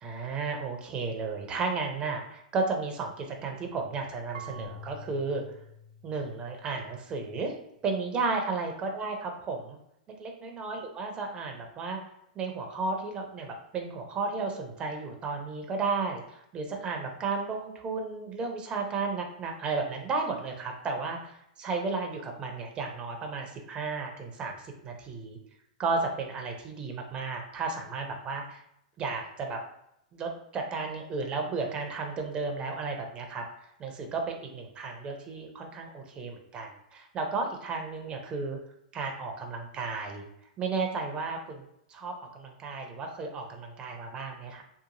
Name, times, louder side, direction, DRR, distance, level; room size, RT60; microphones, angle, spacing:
voice 1, 0.0-5.4 6.0-7.5 7.8-9.8 10.2-12.0 12.4-25.4 25.8-28.6 29.0-29.6 30.1-33.4 33.8-38.6 38.9-40.2 40.6-41.6 41.9-44.6, right 4 dB, 25° right, 2 dB, 0.6 m, -33 dB
Marimba xylophone / Wood, 4.3-7.2, equal, 70° right, 0.4 m, -47 dB
2.9 x 2.3 x 2.6 m, 0.78 s
hypercardioid pair, 120°, 4 cm